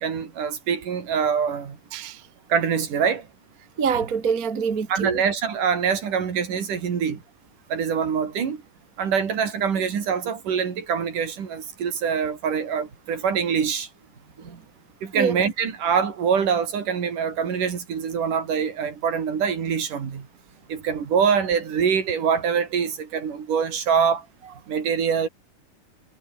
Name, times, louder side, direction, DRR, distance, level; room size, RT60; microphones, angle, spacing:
voice 1, 0.0-1.8 2.5-3.3 4.9-7.2 7.7-8.6 9.0-13.9 15.0-20.3 20.7-24.2 24.7-25.3, right 7 dB, 65° right, 4.6 m, -24 dB
voice 2, 3.8-5.2 14.4-14.6 15.1-15.4, right 6 dB, 30° right, 1.9 m, -25 dB
omnidirectional pair, 4.0 m